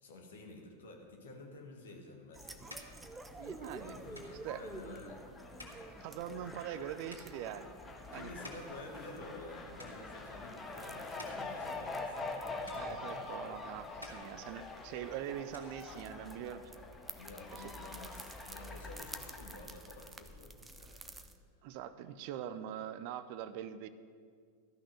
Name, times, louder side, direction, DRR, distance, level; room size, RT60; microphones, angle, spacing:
voice 1, 0.0-2.8 3.6-5.2 8.1-12.5 17.2-21.3, left 2 dB, 65° left, 2 dB, 1.9 m, -51 dB
sound 1, 2.3-21.4, right 2 dB, 10° right, 0.7 m, -52 dB
sound 2, 2.6-9.5 9.8-10.5 10.9-12.4 12.7-13.5 13.8-15.1 15.3-16.4, left 1 dB, 90° right, 1.9 m, -56 dB
Fowl, 2.7-20.1, left 3 dB, 15° left, 1.4 m, -46 dB
voice 2, 3.4-4.0 4.4-4.7 5.8-7.7 8.1-8.3 8.6-8.7 12.7-16.9 17.5-17.7 21.6-23.9, right 10 dB, 45° right, 13 dB, 0.6 m, -43 dB
13.0 x 6.2 x 9.7 m, 2.1 s
figure-of-eight pair, 90°, 0 cm